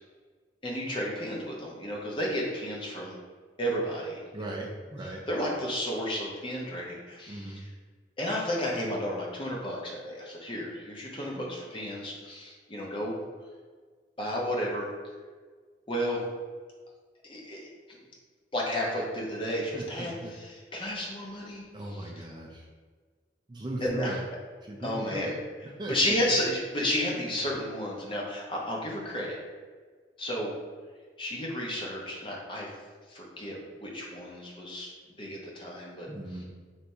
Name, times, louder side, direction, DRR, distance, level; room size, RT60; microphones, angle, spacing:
voice 1, 0.6-3.2 3.6-4.5 5.0-7.6 8.2-13.2 14.2-14.9 15.9-16.2 17.3-18.0 18.5-22.1 23.8-24.2 24.8-25.3 25.9-29.4 30.2-30.5 31.2-32.7 33.1-34.9 35.2-36.1 36.4-36.5, equal, 30° left, -3 dB, 0.7 m, -32 dB
voice 2, 4.3-5.2 7.3-7.6 19.7-20.3 21.7-22.7 23.5-24.2 24.6-25.4 25.8-25.9 36.1-36.4, right 1 dB, 25° right, -1 dB, 0.4 m, -38 dB
3.4 x 2.6 x 4.2 m, 1.5 s
head